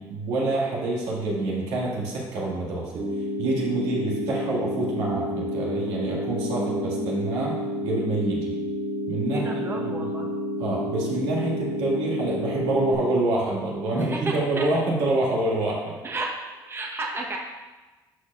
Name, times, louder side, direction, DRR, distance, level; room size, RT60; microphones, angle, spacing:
voice 1, 0.0-8.5 9.1-10.0 10.6-16.0, right 2 dB, 90° right, -4 dB, 1.8 m, -27 dB
sound 1, 3.0-13.0, equal, 50° right, 1.8 m, -30 dB
voice 2, 6.5-7.2 9.3-10.3 14.0-14.7 16.0-16.4 16.7-17.4, right 2 dB, 25° right, 0 dB, 1.0 m, -32 dB
11.5 x 4.7 x 2.4 m, 1.2 s
cardioid pair, 85°, 9 cm